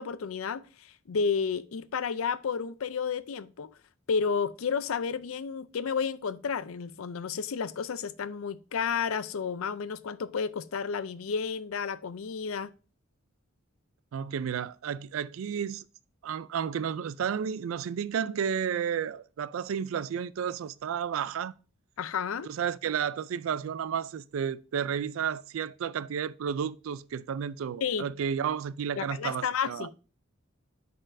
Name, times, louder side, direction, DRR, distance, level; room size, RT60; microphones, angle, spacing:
voice 1, 0.0-3.8 4.1-12.7 22.0-22.5 27.8-28.1 29.0-30.0, left 6 dB, 85° left, 0.5 m, -31 dB
voice 2, 14.1-15.8 16.2-21.5 22.5-29.9, right 7 dB, 75° right, 0.3 m, -32 dB
9.9 x 4.3 x 2.6 m
head